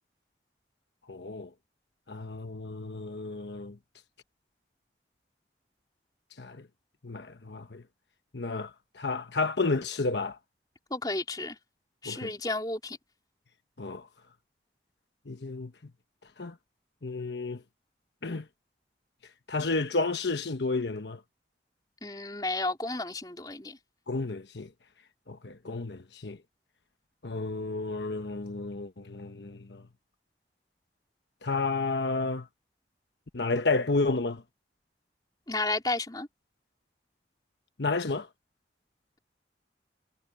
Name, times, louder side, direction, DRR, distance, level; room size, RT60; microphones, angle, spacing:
voice 1, 1.1-1.5 2.1-3.8 6.4-6.6 7.0-7.8 8.3-8.7 9.0-10.4 12.1-12.3 13.8-14.1 15.3-15.7 16.4-16.5 17.0-17.6 18.2-18.4 19.5-21.2 24.1-24.7 25.3-26.4 27.2-29.8 31.4-32.5 33.3-34.4 37.8-38.3, left 3 dB, 80° left, 1.1 m, -31 dB
voice 2, 10.9-11.6 12.0-13.0 22.0-23.8 35.5-36.3, left 2 dB, 20° left, 3.5 m, -32 dB
head